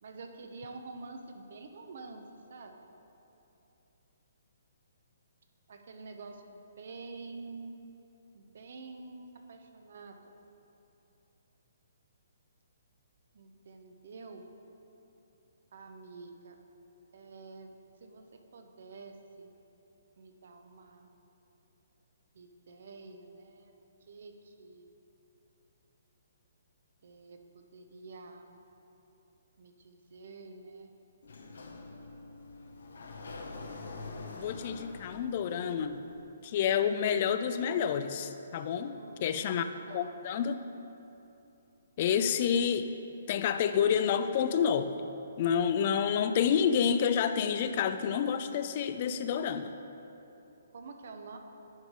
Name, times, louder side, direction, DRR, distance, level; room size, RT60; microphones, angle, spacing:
voice 1, 0.0-2.9 5.7-7.8 8.3-10.3 13.3-14.4 15.7-16.6 17.1-17.7 18.0-19.5 20.2-21.1 22.3-23.7 24.1-24.9 27.0-28.6 29.6-30.9 38.9-39.5 39.9-40.2 50.7-51.4, right 3 dB, 60° right, 5 dB, 0.7 m, -48 dB
Sliding door, 31.2-36.2, left 3 dB, 70° left, 0.7 m, -45 dB
voice 2, 34.4-36.0 36.4-40.6 42.0-42.9 43.3-44.9 45.4-49.7, left 7 dB, 45° left, 10 dB, 0.3 m, -29 dB
10.5 x 3.9 x 4.7 m, 2.9 s
hypercardioid pair, 135°, 0 cm